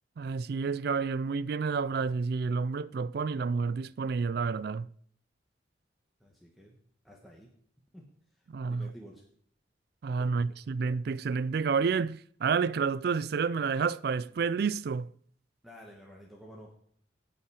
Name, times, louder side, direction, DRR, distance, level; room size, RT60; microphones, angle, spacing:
voice 1, 0.2-4.9 8.5-8.9 10.0-15.1, right 5 dB, 50° right, 0.3 m, -30 dB
voice 2, 6.2-6.8 7.0-7.5 7.9-8.0 8.4-9.2 10.2-10.3 15.6-16.8, equal, ahead, 1.2 m, -51 dB
16.5 x 5.7 x 4.8 m
head